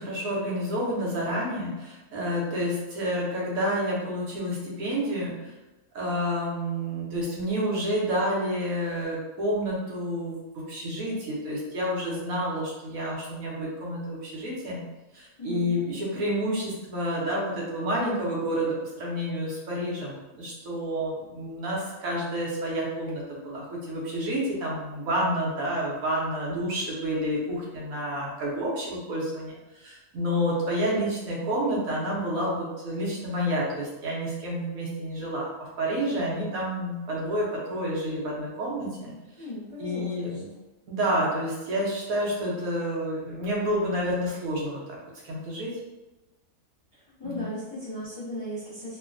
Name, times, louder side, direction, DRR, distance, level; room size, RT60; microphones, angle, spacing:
voice 1, 0.0-5.4 5.9-14.8 15.1-39.1 39.8-40.5 40.9-44.8 45.2-45.8 47.3-47.5, equal, 80° right, -4 dB, 1.2 m, -29 dB
voice 2, 15.4-15.8 39.4-40.4 46.9-49.0, left 1 dB, 25° left, -11 dB, 0.6 m, -37 dB
3.0 x 2.2 x 2.5 m, 1.1 s
omnidirectional pair, 1.5 m